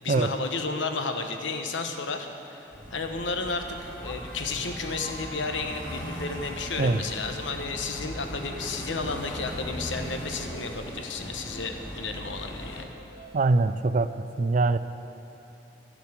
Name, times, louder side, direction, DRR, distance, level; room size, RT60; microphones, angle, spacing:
voice 1, 0.0-12.9, left 4 dB, 85° left, 5 dB, 1.0 m, -32 dB
sound 1, 2.7-12.8, equal, 10° left, 2.3 m, -39 dB
sound 2, 4.6-13.3, left 1 dB, 45° left, 2.4 m, -49 dB
voice 2, 13.3-14.1 14.4-14.8, right 3 dB, 45° right, 12 dB, 0.4 m, -23 dB
11.5 x 7.2 x 8.2 m, 2.7 s
head